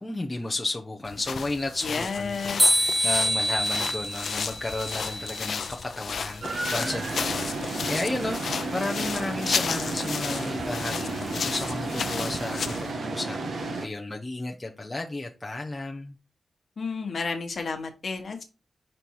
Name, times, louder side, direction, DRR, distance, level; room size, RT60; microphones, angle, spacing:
voice 1, 0.0-16.2, left 2 dB, 15° left, 0.6 m, -33 dB
sound 1, 1.1-12.9, left 6 dB, 70° left, 0.5 m, -33 dB
voice 2, 1.8-2.7 16.8-18.4, left 4 dB, 50° left, 1.2 m, -31 dB
sound 2, 2.6-5.7, equal, 15° right, 1.0 m, -26 dB
sound 3, 6.4-13.9, right 3 dB, 70° right, 1.0 m, -32 dB
5.3 x 4.3 x 4.6 m
wide cardioid pair, 165°, 0 cm